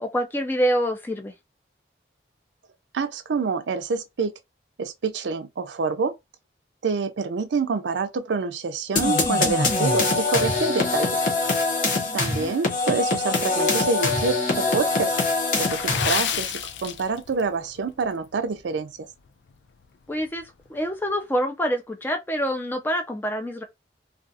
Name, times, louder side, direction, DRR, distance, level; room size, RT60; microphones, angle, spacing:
voice 1, 0.0-1.3 12.1-12.6 20.1-23.6, equal, 10° left, 0.4 m, -26 dB
voice 2, 2.9-4.3 4.8-6.1 6.8-11.1 12.1-15.1 15.6-18.9, right 4 dB, 90° right, 0.4 m, -27 dB
sound 1, 9.0-16.3, left 3 dB, 50° left, 0.8 m, -23 dB
Water / Splash splatter, 15.6-17.5 17.8-18.0 18.6-18.8 19.3-19.4, left 9 dB, 85° left, 0.4 m, -29 dB
2.4 x 2.4 x 2.6 m
head